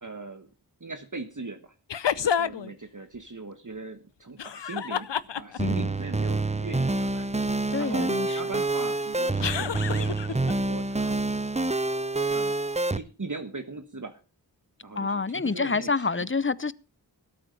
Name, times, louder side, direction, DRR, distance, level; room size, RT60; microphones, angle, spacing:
voice 1, 0.0-0.5 0.8-1.7 2.1-5.1 5.4-11.1 12.3-12.6 12.9-14.2 14.8-16.3, right 3 dB, 45° right, 1.4 m, -39 dB
sound 1, 1.9-2.7 4.4-5.8 9.4-10.5, left 8 dB, 85° left, 0.7 m, -29 dB
voice 2, 5.6-5.9 7.7-8.4 14.9-16.7, left 4 dB, 30° left, 0.7 m, -28 dB
sound 2, 5.6-13.0, right 2 dB, 15° right, 0.7 m, -27 dB
17.5 x 8.6 x 5.4 m
wide cardioid pair, 40°, 41 cm